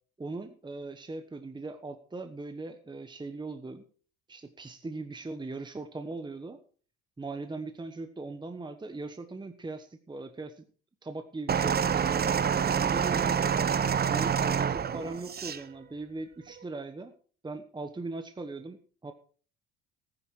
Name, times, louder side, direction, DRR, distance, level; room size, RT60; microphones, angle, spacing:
voice 1, 0.2-3.8 4.3-6.6 7.2-10.6 11.0-11.8 12.7-13.6 14.1-17.1 17.4-19.1, right 3 dB, 15° right, 8 dB, 1.2 m, -39 dB
sound 1, 11.5-15.6 16.5-16.6, right 7 dB, 30° right, 0.9 m, -27 dB
14.0 x 10.0 x 4.6 m, 0.42 s
supercardioid pair, 85°, 30 cm